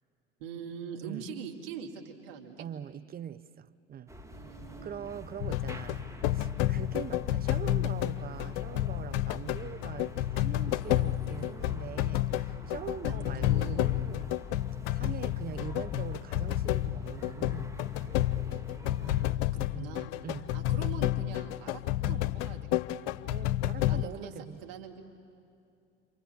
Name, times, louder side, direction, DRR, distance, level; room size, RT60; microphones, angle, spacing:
voice 1, 0.4-2.7 4.3-5.0 13.1-13.9 19.0-20.1 20.5-23.0 23.9-24.3 24.6-25.1, right 7 dB, 70° right, 2.6 m, -43 dB
voice 2, 2.6-4.1 4.8-6.1 6.3-14.4 14.9-18.4 19.7-20.0 20.2-20.5 23.3-24.6, right 9 dB, 30° right, 0.8 m, -43 dB
sound 1, 4.1-19.4, left 1 dB, 10° right, 2.2 m, -46 dB
sound 2, 5.4-24.1, left 14 dB, 60° left, 0.7 m, -30 dB
28.0 x 27.0 x 7.2 m
hypercardioid pair, 65°, 30 cm